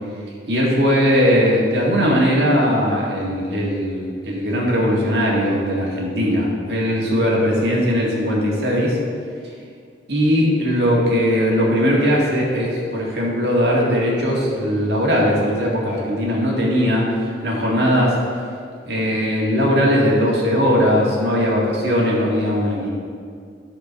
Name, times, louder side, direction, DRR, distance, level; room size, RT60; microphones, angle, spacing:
voice 1, 0.5-9.0 10.1-17.1 17.4-18.2 18.9-22.9, equal, 65° right, -3 dB, 1.9 m, -19 dB
10.0 x 4.7 x 5.7 m, 2.2 s
head